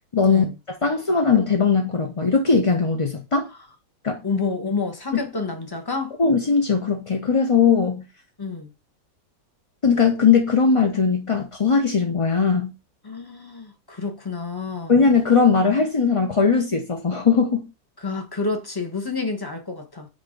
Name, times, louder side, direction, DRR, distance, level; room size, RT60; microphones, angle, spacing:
voice 1, 0.1-0.4 0.8-3.5 4.0-4.2 5.1-5.3 6.2-8.0 9.8-12.7 14.9-17.7, left 5 dB, 45° left, 0.4 m, -19 dB
voice 2, 4.2-6.2 8.4-8.7 13.0-15.0 18.0-20.1, left 4 dB, 20° left, 0.8 m, -29 dB
8.6 x 2.9 x 3.8 m
omnidirectional pair, 1.9 m